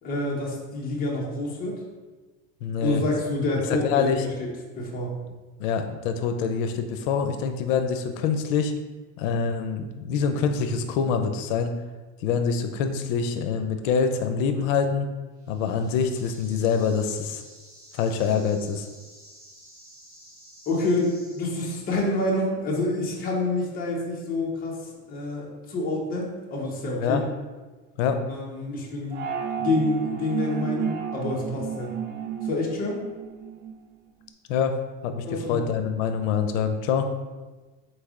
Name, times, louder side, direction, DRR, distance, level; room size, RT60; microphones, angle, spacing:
voice 1, 0.0-1.8 2.8-4.5 4.8-5.1 20.7-27.2 28.3-29.3 29.6-31.9 32.4-33.1 35.3-35.6, left 2 dB, 25° left, -3 dB, 0.8 m, -28 dB
voice 2, 2.6-3.0 3.7-4.2 5.6-8.7 9.2-11.7 12.2-15.1 15.5-17.4 17.9-18.9 27.0-27.2 28.0-28.2 34.5-34.8 35.0-37.1, left 6 dB, 90° left, 7 dB, 0.5 m, -25 dB
sound 1, 15.4-22.1, equal, 15° right, 1.3 m, -51 dB
sound 2, 29.1-33.7, right 7 dB, 50° right, 0.5 m, -32 dB
4.2 x 3.3 x 3.6 m, 1.3 s
cardioid pair, 165°, 37 cm